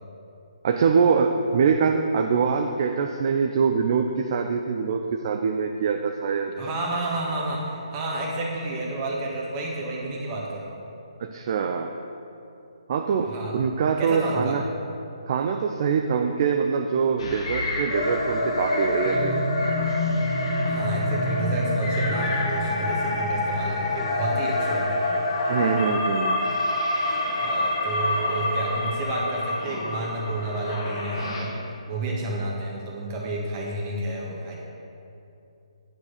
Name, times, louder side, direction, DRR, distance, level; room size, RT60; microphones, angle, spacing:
voice 1, 0.6-6.5 11.2-11.9 12.9-14.6 15.3-19.4 25.5-26.4, right 6 dB, 40° right, 5 dB, 0.4 m, -24 dB
voice 2, 6.6-10.8 13.2-13.6 14.0-14.6 20.6-25.2 27.0-31.5 31.9-34.5, right 2 dB, 25° right, -3 dB, 1.7 m, -30 dB
sound 1, 17.2-31.4, left 1 dB, 55° left, 1.9 m, -26 dB
9.4 x 4.8 x 6.6 m, 2.7 s
figure-of-eight pair, 140°, 3 cm